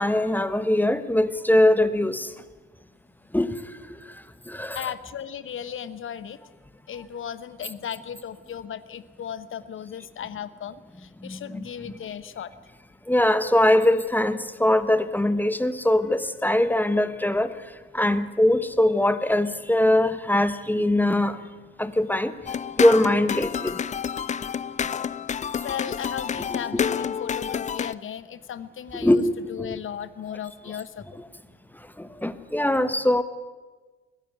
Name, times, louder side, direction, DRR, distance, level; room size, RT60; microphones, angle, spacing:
voice 1, 0.0-2.3 3.3-3.5 4.5-4.8 11.2-11.7 13.1-17.5 17.9-21.4 21.8-22.3 22.8-23.8 26.7-26.8 28.9-29.3 29.6-29.7 32.2-33.2, left 1 dB, 5° left, 13 dB, 1.3 m, -21 dB
voice 2, 4.7-6.4 6.9-12.5 25.6-29.2 29.5-31.2, left 9 dB, 35° left, 15 dB, 1.2 m, -36 dB
sound 1, 22.5-27.9, left 7 dB, 20° left, 0.6 m, -29 dB
22.0 x 15.5 x 9.3 m, 1.3 s
figure-of-eight pair, 55°, 34 cm